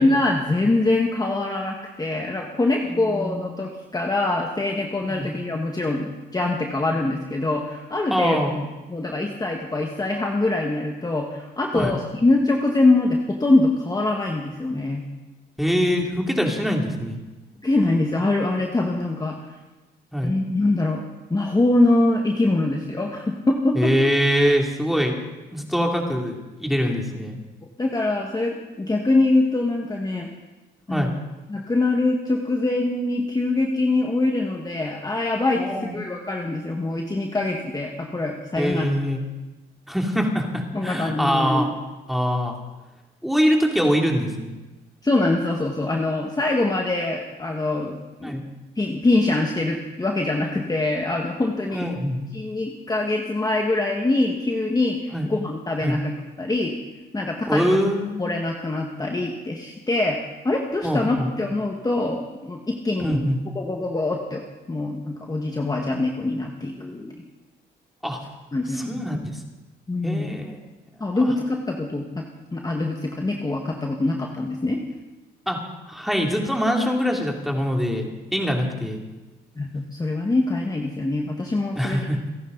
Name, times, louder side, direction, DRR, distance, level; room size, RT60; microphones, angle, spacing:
voice 1, 0.0-15.0 17.6-19.4 20.2-21.0 21.3-23.9 27.8-30.3 30.9-31.2 31.5-38.9 40.7-41.7 45.0-48.4 48.8-51.9 52.3-56.7 57.1-57.7 58.2-60.2 60.4-63.3 63.6-67.2 68.5-69.0 69.9-70.3 71.0-72.2 72.5-74.8 79.6-82.2, left 2 dB, 20° left, 0 dB, 1.8 m, -24 dB
voice 2, 8.1-8.6 11.7-12.0 15.6-17.2 20.1-20.3 23.7-25.1 25.5-27.4 30.9-31.1 35.6-35.9 38.5-39.2 39.9-41.7 42.1-42.5 43.2-44.5 48.2-48.4 51.7-52.2 55.1-55.3 55.8-56.0 57.5-58.1 60.8-61.3 63.0-63.4 68.0-68.2 68.7-69.4 70.0-70.6 71.1-71.3 75.5-75.6 75.9-79.0 81.7-82.3, equal, ahead, 1 dB, 3.0 m, -23 dB
29.5 x 11.0 x 4.1 m, 1.1 s
cardioid pair, 90°, 20 cm